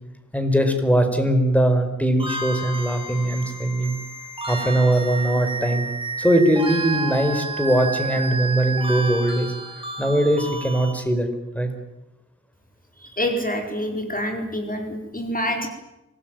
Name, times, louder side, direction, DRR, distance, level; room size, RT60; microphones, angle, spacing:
voice 1, 0.3-3.9 4.5-5.9 6.2-9.5 10.0-11.3 11.5-11.7, right 1 dB, 5° left, 6 dB, 4.8 m, -20 dB
sound 1, 2.2-10.9, right 3 dB, 15° right, 6.3 m, -31 dB
voice 2, 13.0-15.7, equal, 30° left, 3 dB, 4.7 m, -27 dB
25.5 x 19.5 x 9.3 m, 0.98 s
wide cardioid pair, 80°, 30 cm